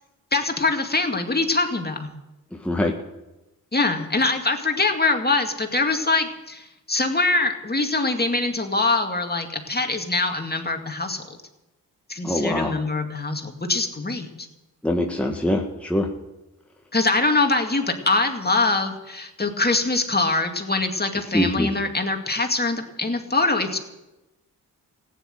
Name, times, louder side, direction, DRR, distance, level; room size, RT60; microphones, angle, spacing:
voice 1, 0.3-2.1 3.7-11.2 12.1-14.5 16.9-23.8, left 3 dB, 25° left, 4 dB, 2.3 m, -23 dB
voice 2, 2.5-2.9 12.2-12.7 14.8-16.1 21.3-21.7, left 1 dB, 5° left, 1 dB, 1.8 m, -23 dB
15.0 x 10.0 x 7.9 m, 1.0 s
supercardioid pair, 45°, 39 cm